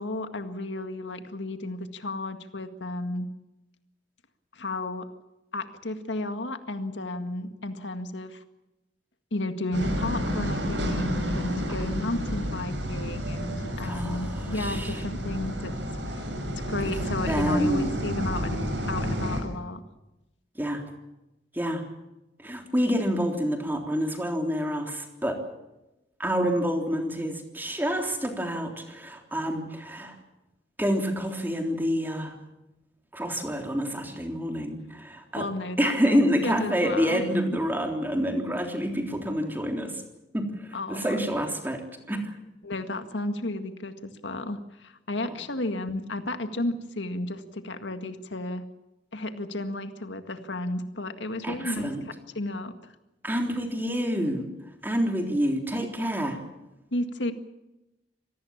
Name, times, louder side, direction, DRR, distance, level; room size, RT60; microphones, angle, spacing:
voice 1, 0.0-3.3 4.5-5.1 5.5-8.4 9.3-15.8 16.1-16.3 16.7-18.6 18.9-19.8 35.3-37.2 40.7-41.2 42.6-48.7 49.1-52.9 56.9-57.3, left 2 dB, 85° left, 8 dB, 1.9 m, -33 dB
sound 1, 9.7-19.4, equal, 80° right, 6.8 m, -30 dB
voice 2, 13.8-14.9 17.3-18.0 20.6-20.8 21.5-21.8 22.4-25.4 26.2-30.2 30.8-32.4 33.1-35.5 35.8-40.0 40.3-41.8 42.1-42.3 51.4-52.1 53.2-54.5 54.8-56.4, equal, 10° right, 3 dB, 3.4 m, -28 dB
25.5 x 19.0 x 7.3 m, 0.97 s
head